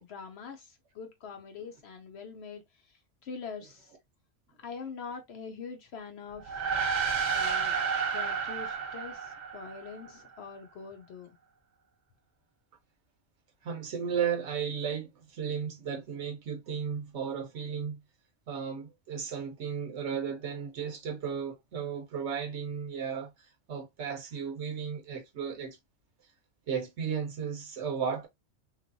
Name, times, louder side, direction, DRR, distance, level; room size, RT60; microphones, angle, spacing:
voice 1, 0.0-2.6 3.2-3.9 4.6-6.7 7.3-7.8 8.1-11.3, left 5 dB, 65° left, 0.8 m, -43 dB
sound 1, 6.4-10.1, right 6 dB, 45° right, 0.6 m, -31 dB
voice 2, 13.6-18.0 18.5-25.8 26.7-28.3, right 7 dB, 70° right, 0.9 m, -34 dB
3.1 x 2.5 x 2.5 m
omnidirectional pair, 1.2 m